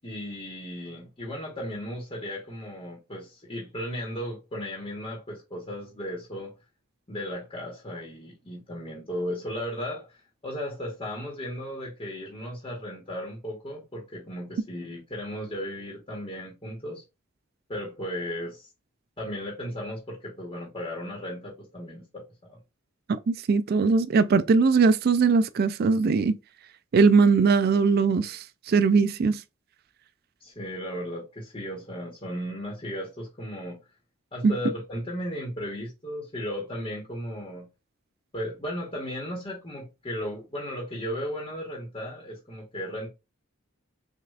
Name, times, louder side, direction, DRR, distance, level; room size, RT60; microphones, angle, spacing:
voice 1, 0.0-6.5 7.1-17.0 17.7-18.7 19.2-22.6 30.4-33.8 34.3-37.7 38.3-43.1, equal, 25° left, 1.2 m, -35 dB
voice 2, 23.3-26.3 26.9-29.4 34.4-34.5, right 4 dB, 50° right, 0.3 m, -20 dB
6.3 x 2.4 x 2.4 m
head